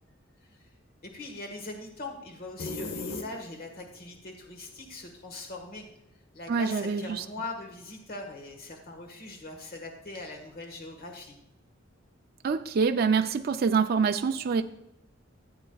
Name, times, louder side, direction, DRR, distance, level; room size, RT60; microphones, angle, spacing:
voice 1, 1.0-5.8 6.3-11.4, left 2 dB, 50° left, 1.4 m, -41 dB
sound 1, 2.6-3.8, left 3 dB, 70° left, 0.9 m, -36 dB
voice 2, 6.5-7.2 12.4-14.6, right 5 dB, 50° right, 0.4 m, -25 dB
14.0 x 8.2 x 2.3 m
head